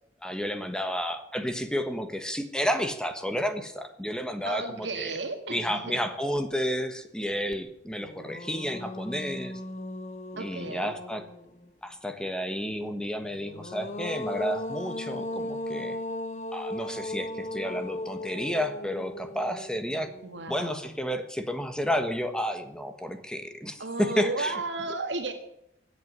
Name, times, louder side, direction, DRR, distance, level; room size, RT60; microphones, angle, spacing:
voice 1, 0.2-5.2 5.5-9.6 10.3-11.2 11.8-16.0 16.5-20.1 20.5-24.6, equal, 5° left, 7 dB, 1.3 m, -31 dB
voice 2, 4.4-5.8 10.3-10.9 20.2-20.8 23.8-25.3, right 3 dB, 85° right, 4 dB, 1.8 m, -33 dB
sound 1, 7.5-7.6 8.0-11.7 13.3-20.6, left 1 dB, 40° left, 1.3 m, -37 dB
17.0 x 8.3 x 9.8 m, 0.75 s
head